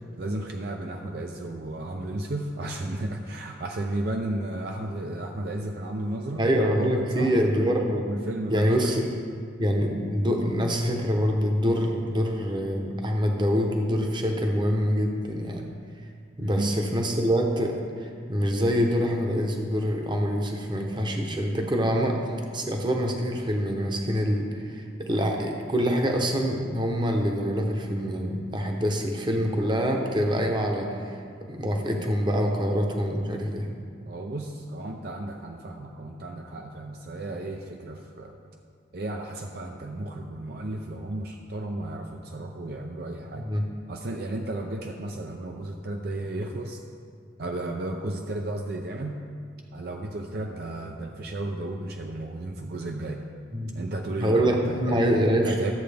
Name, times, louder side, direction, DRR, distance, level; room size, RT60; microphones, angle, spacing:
voice 1, 0.0-6.4 6.7-7.3 8.1-8.9 16.4-16.8 34.1-38.4 38.9-43.5 43.9-46.8 47.4-49.2 49.7-53.2 53.7-55.1 55.4-55.7, right 1 dB, 55° right, 3 dB, 0.5 m, -33 dB
voice 2, 6.4-8.1 8.5-9.0 9.6-15.6 16.4-22.2 22.5-31.2 31.5-33.7 43.4-43.6 53.5-53.7 54.2-55.5, equal, 25° right, 2 dB, 0.9 m, -25 dB
13.0 x 7.7 x 3.4 m, 2.2 s
head